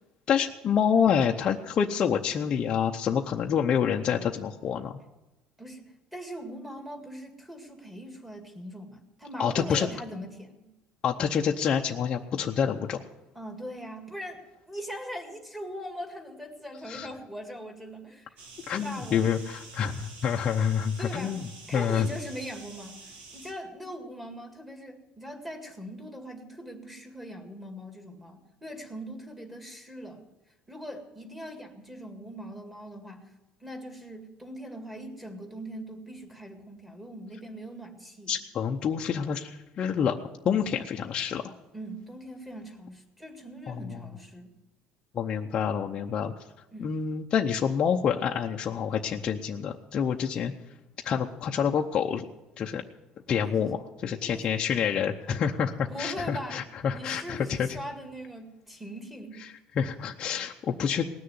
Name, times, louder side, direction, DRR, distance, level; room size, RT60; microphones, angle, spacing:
voice 1, 0.3-4.9 9.4-9.9 11.0-13.0 16.9-17.1 18.7-21.4 21.7-22.1 38.3-40.2 40.4-41.5 43.7-44.0 45.1-46.3 46.8-50.5 51.0-52.3 52.6-52.8 53.3-53.8 54.0-57.7 59.8-61.1, left 7 dB, 30° left, 1 dB, 0.7 m, -27 dB
voice 2, 5.6-10.7 13.3-18.4 18.8-19.4 21.0-21.4 21.7-30.3 30.7-33.3 33.6-38.3 41.7-44.5 46.7-46.9 53.4-53.7 54.3-54.6 55.9-56.6 56.9-59.4, equal, 5° right, 2 dB, 2.0 m, -41 dB
sound 1, 18.4-23.5, right 3 dB, 55° right, 2.9 m, -48 dB
19.0 x 6.7 x 9.4 m, 0.98 s
cardioid pair, 170°, 3 cm